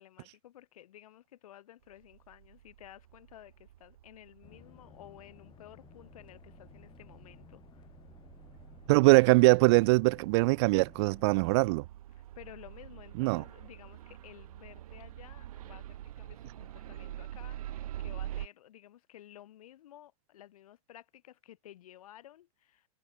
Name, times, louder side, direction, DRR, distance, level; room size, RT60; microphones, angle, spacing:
voice 1, 0.0-7.9 12.1-22.9, left 12 dB, 70° left, 7.4 m, -54 dB
sound 1, 1.9-18.5, right 12 dB, 70° right, 4.2 m, -46 dB
sound 2, 4.4-11.7, left 9 dB, 25° left, 3.1 m, -57 dB
voice 2, 8.9-11.8 13.2-13.4, right 25 dB, 45° right, 0.4 m, -22 dB
hypercardioid pair, 120°, 19 cm